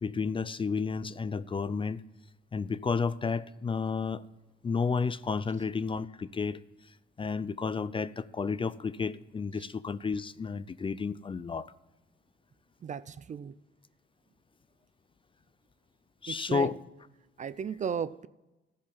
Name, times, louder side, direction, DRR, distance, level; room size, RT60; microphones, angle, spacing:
voice 1, 0.0-2.0 2.5-4.2 4.6-6.6 7.2-11.7 16.2-16.8, left 5 dB, 25° left, 0.4 m, -31 dB
voice 2, 12.8-13.5 16.3-16.7 17.4-18.3, right 7 dB, 40° right, 0.4 m, -35 dB
14.5 x 5.4 x 7.4 m
cardioid pair, 90°, 20 cm